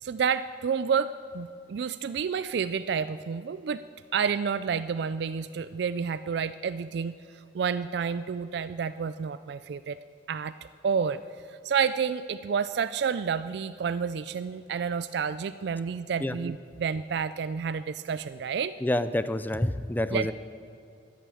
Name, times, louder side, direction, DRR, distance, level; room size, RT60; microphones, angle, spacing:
voice 1, 0.0-3.8 4.1-10.0 10.3-10.5 10.8-11.2 11.5-18.7 20.1-20.3, right 6 dB, 60° right, 13 dB, 0.3 m, -30 dB
voice 2, 18.8-20.3, left 1 dB, 10° left, 13 dB, 0.4 m, -27 dB
12.5 x 11.0 x 7.7 m, 2.5 s
head